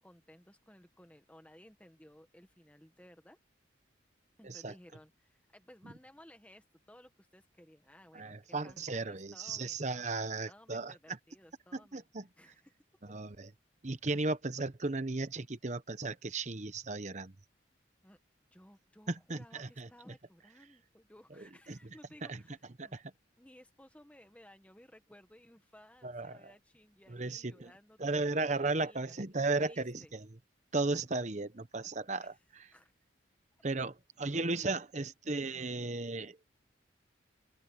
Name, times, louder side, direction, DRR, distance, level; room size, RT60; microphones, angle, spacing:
voice 1, 0.0-3.4 4.4-12.0 12.4-12.8 18.0-18.2 18.5-23.0 23.4-29.2 29.7-30.1 32.2-32.3 32.7-32.9, left 1 dB, 5° left, 1.4 m, -59 dB
voice 2, 8.1-11.2 11.7-12.3 13.0-13.5 13.8-17.3 19.1-19.9 21.4-21.8 22.2-22.4 22.8-23.0 26.0-26.5 27.1-27.7 28.0-30.3 30.7-32.7 33.6-36.4, right 3 dB, 40° right, 1.0 m, -35 dB
open air
head